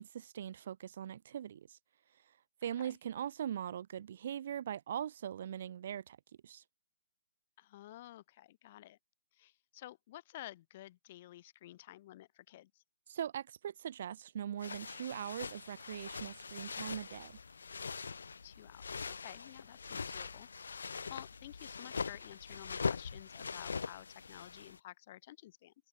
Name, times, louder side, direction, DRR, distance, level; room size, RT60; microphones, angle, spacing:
voice 1, 0.0-1.8 2.6-6.2 6.4-6.6 13.1-17.4, right 9 dB, 50° right, 0.6 m, -41 dB
voice 2, 7.6-9.0 9.3-12.8 18.4-25.7, left 15 dB, 35° left, 1.4 m, -52 dB
sound 1, 14.6-24.8, left 5 dB, 80° left, 0.4 m, -42 dB
hypercardioid pair, 155°, 0 cm